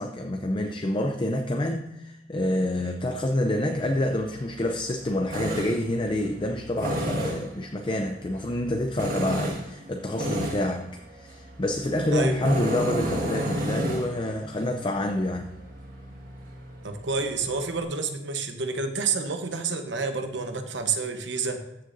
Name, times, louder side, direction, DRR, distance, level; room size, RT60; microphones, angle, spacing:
voice 1, 0.0-15.5, left 1 dB, 25° left, 4 dB, 0.5 m, -27 dB
Tools, 3.7-17.8, equal, 45° right, 1.8 m, -33 dB
voice 2, 16.8-21.7, right 4 dB, 65° right, 6 dB, 1.0 m, -29 dB
14.0 x 6.7 x 2.6 m, 0.95 s
head